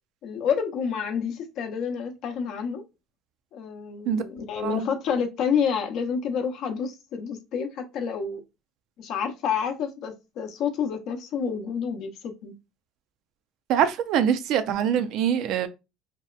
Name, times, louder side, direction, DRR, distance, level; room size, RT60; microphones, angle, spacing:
voice 1, 0.2-2.8 3.5-8.4 9.0-12.5, left 7 dB, 60° left, 0.6 m, -29 dB
voice 2, 4.6-4.9 13.7-15.7, right 9 dB, 65° right, 0.4 m, -24 dB
2.7 x 2.1 x 2.3 m
cardioid pair, 115°, 0 cm